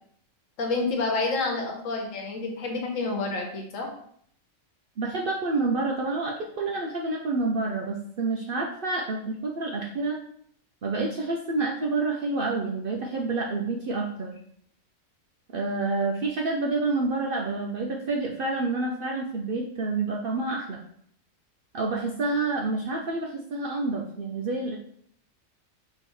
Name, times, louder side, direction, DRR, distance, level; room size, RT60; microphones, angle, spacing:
voice 1, 0.6-3.9, left 3 dB, 70° left, 2 dB, 1.3 m, -28 dB
voice 2, 5.0-10.2 10.8-14.4 15.5-20.8 21.7-24.8, right 3 dB, 60° right, 0 dB, 0.6 m, -28 dB
5.6 x 3.0 x 3.0 m, 0.65 s
omnidirectional pair, 1.4 m